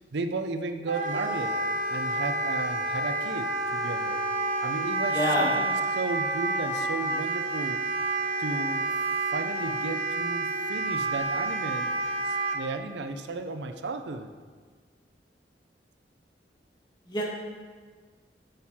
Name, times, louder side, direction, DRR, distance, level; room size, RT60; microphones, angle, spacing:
voice 1, 0.1-1.6 1.9-4.2 4.6-7.8 8.4-8.9 9.3-11.9 12.2-14.3, right 3 dB, 80° right, 8 dB, 0.6 m, -34 dB
Wind instrument woodwind instrument, 0.9-12.6, right 2 dB, 50° right, 0.8 m, -29 dB
voice 2, 5.1-5.5 17.1-17.2, left 1 dB, 25° left, -4 dB, 1.9 m, -26 dB
8.9 x 7.5 x 4.2 m, 1.5 s
head